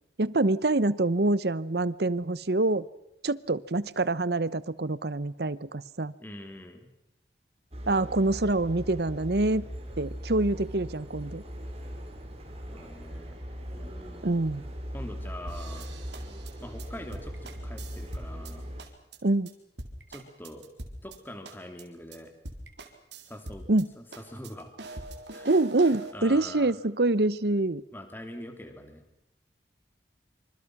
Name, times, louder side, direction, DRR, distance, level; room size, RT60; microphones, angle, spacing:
voice 1, 0.2-2.9 3.2-6.1 7.9-9.6 10.0-11.4 14.2-14.6 19.2-19.5 23.7-23.9 25.5-27.8, right 2 dB, 65° right, 18 dB, 0.9 m, -26 dB
voice 2, 6.2-6.9 7.9-8.3 12.7-13.3 13.7-14.4 14.9-15.9 16.6-18.7 20.1-20.7 21.0-22.3 23.3-23.7 24.0-24.7 25.3-25.6 26.1-26.7 27.9-29.0, left 1 dB, 10° left, 6 dB, 2.9 m, -44 dB
sound 1, 7.7-18.8, equal, 35° right, 4.7 m, -40 dB
sound 2, 15.5-18.5 18.8-19.2 19.5-19.6 19.8-21.2 21.4-21.8 22.1-22.2 22.4-23.8 24.1-26.1, right 2 dB, 80° right, 3.9 m, -43 dB
26.5 x 26.0 x 6.1 m, 0.83 s
head